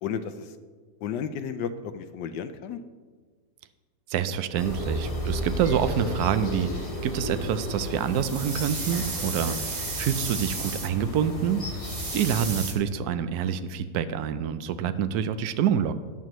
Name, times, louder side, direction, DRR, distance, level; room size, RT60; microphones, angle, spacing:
voice 1, 0.0-0.5 1.0-2.8, left 7 dB, 80° left, 9 dB, 1.3 m, -33 dB
voice 2, 4.1-9.6 10.0-11.6 12.1-15.9, right 8 dB, 70° right, 12 dB, 1.0 m, -27 dB
sound 1, 4.5-12.6, equal, 20° left, 1.4 m, -33 dB
sound 2, 8.0-10.9 11.8-12.7, right 4 dB, 35° right, 0.7 m, -34 dB
14.5 x 9.5 x 3.1 m, 1.5 s
omnidirectional pair, 1.9 m